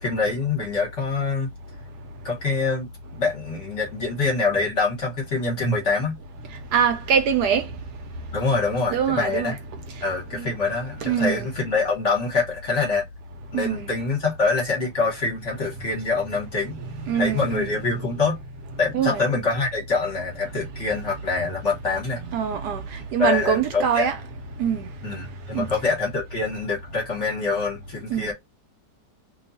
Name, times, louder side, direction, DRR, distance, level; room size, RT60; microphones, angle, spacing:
voice 1, 0.0-1.5 2.2-2.9 3.2-6.2 8.3-9.6 10.0-13.0 13.5-16.8 17.1-18.4 18.8-22.2 23.2-24.1 25.0-28.3, left 4 dB, 45° left, 1.3 m, -25 dB
voice 2, 6.7-7.7 8.9-9.5 10.4-10.5 11.0-11.5 13.5-13.9 17.1-17.7 18.9-19.2 22.3-22.8 23.1-24.2 24.6-24.9 25.5-25.7 28.1-28.3, right 8 dB, 70° right, 1.1 m, -23 dB
2.9 x 2.3 x 3.9 m
omnidirectional pair, 1.9 m